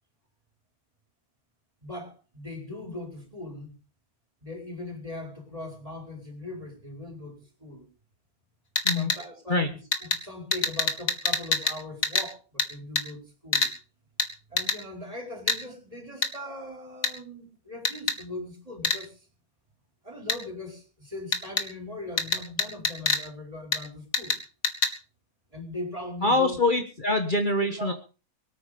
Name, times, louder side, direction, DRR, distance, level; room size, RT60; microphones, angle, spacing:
voice 1, 1.8-3.7 4.4-7.9 8.9-13.7 14.5-19.3 20.0-24.4 25.5-26.6 27.8-27.9, left 2 dB, 25° right, 3 dB, 5.0 m, -40 dB
sound 1, 8.8-9.2 9.9-10.2 10.5-11.8 12.0-12.3 12.6-12.7 13.0-13.1 13.5-13.7 14.2-14.3 14.6-14.8 15.5-15.6 16.2-16.3 17.0-17.1 17.8-18.2 18.8-19.0 20.3-20.4 21.3-21.7 22.2-23.2 23.7-23.8 24.1-24.4 24.6-24.9, left 4 dB, 70° left, 2.5 m, -25 dB
voice 2, 26.2-27.9, left 2 dB, 35° left, 6 dB, 1.6 m, -24 dB
23.0 x 9.2 x 5.2 m, 0.35 s
omnidirectional pair, 1.5 m